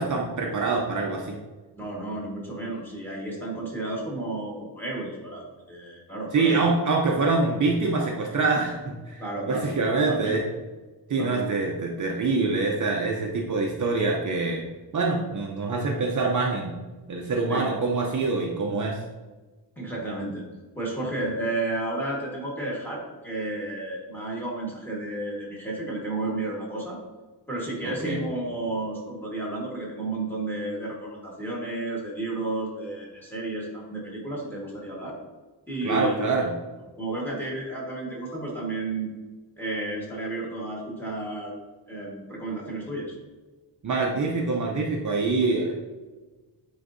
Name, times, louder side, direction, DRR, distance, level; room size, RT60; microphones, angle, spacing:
voice 1, 0.0-1.4 6.3-10.4 11.1-14.7 14.9-16.7 17.1-19.0 27.8-28.2 35.8-36.5 43.8-45.7, right 3 dB, 45° right, -1 dB, 0.7 m, -25 dB
voice 2, 1.7-6.6 9.2-9.7 10.1-10.4 11.2-11.5 17.5-17.8 19.8-20.4 20.7-27.0 27.5-35.2 35.7-36.2 37.0-39.1 39.6-41.6 41.9-43.1, right 2 dB, 5° left, -3 dB, 1.5 m, -32 dB
9.7 x 3.9 x 2.6 m, 1.3 s
wide cardioid pair, 180°, 43 cm